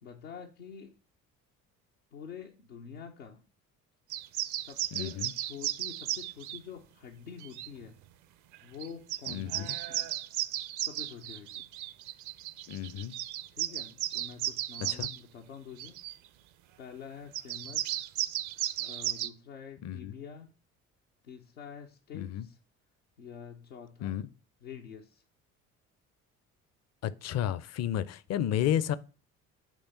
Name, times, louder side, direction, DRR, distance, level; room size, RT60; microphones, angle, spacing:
voice 1, 0.0-1.0 2.1-3.5 4.6-8.0 8.6-10.2 10.8-11.7 13.5-16.1 16.8-17.9 18.8-20.5 21.2-22.6 23.2-24.3 24.6-25.2, left 7 dB, 80° left, 0.8 m, -47 dB
sound 1, 4.1-6.6 7.4-7.7 8.5-8.6 8.8-15.2 15.8-16.2 17.3-19.3, right 13 dB, 50° right, 0.5 m, -35 dB
voice 2, 4.9-5.3 9.3-9.7 12.7-13.1 15.0-15.1 19.8-20.1 22.1-22.5 24.0-24.2 27.0-29.0, left 10 dB, 40° left, 0.5 m, -32 dB
8.3 x 3.3 x 5.5 m
figure-of-eight pair, 50°, 40 cm